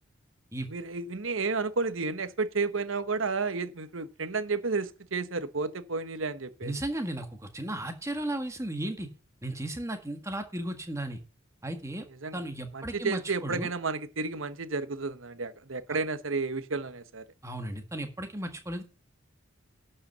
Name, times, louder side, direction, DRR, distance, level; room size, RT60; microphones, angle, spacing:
voice 1, 0.7-6.7 12.2-12.4 12.7-17.2, right 4 dB, 75° right, 1.1 m, -32 dB
voice 2, 6.6-9.1 9.4-11.2 11.6-12.1 12.3-13.7 17.4-18.8, right 1 dB, 15° right, 1.7 m, -35 dB
12.0 x 5.6 x 6.7 m
head